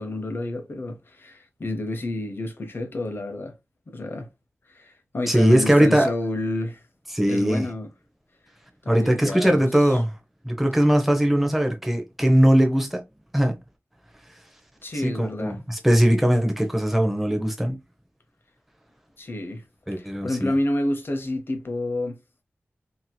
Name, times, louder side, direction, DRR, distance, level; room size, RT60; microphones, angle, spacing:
voice 1, 0.0-3.5 3.9-4.3 4.7-6.8 7.3-7.9 8.8-10.0 14.8-15.6 19.2-19.6 20.0-22.2, left 1 dB, 55° left, 0.7 m, -29 dB
voice 2, 5.3-6.1 7.1-7.7 8.9-10.1 10.4-13.0 13.3-13.6 15.0-17.8 19.9-20.5, equal, 5° right, 0.7 m, -20 dB
2.9 x 2.8 x 2.2 m
wide cardioid pair, 90°, 4 cm